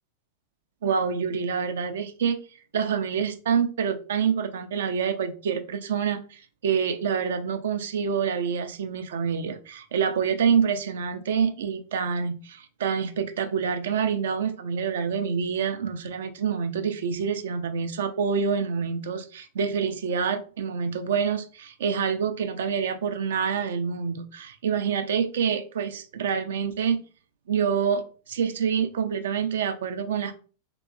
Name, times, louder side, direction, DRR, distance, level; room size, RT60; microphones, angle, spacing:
voice 1, 0.8-2.4 2.7-27.0 27.5-30.3, right 6 dB, 60° right, 8 dB, 0.3 m, -27 dB
2.9 x 2.8 x 2.3 m, 0.38 s
figure-of-eight pair, 90°, 0 cm